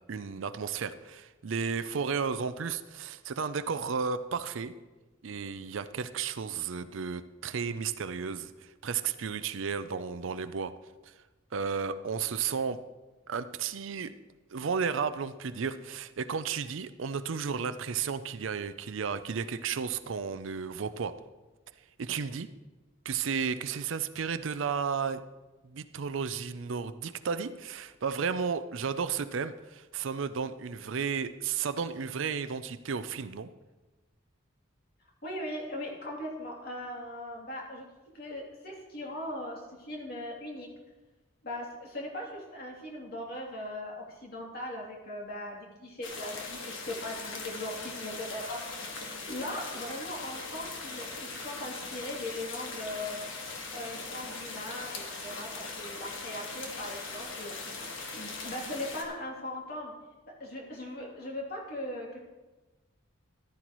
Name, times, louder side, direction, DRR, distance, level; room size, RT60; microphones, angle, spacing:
voice 1, 0.1-4.7 5.2-10.7 11.0-11.1 11.5-12.8 13.3-14.1 14.5-21.1 22.0-22.5 23.0-25.2 25.6-33.5, right 6 dB, 70° right, 12 dB, 0.5 m, -33 dB
voice 2, 35.2-37.8 38.1-40.7 41.4-48.9 49.3-53.2 53.7-57.9 58.1-59.9 60.2-62.2, left 1 dB, 50° left, -2 dB, 2.8 m, -39 dB
sound 1, 46.0-59.0, left 3 dB, 70° left, 1.6 m, -40 dB
13.5 x 12.0 x 3.1 m, 1.2 s
head